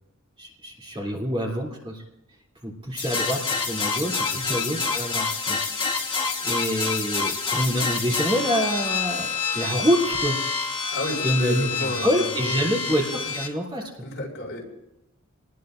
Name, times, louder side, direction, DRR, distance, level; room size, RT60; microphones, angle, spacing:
voice 1, 0.4-2.0 2.6-10.4 11.2-13.8, equal, 25° right, -3 dB, 3.0 m, -27 dB
sound 1, 3.0-13.5, left 5 dB, 25° left, 1.6 m, -27 dB
voice 2, 10.9-12.9 14.0-14.6, left 1 dB, 60° left, -2 dB, 5.2 m, -32 dB
26.5 x 20.0 x 2.6 m, 0.91 s
head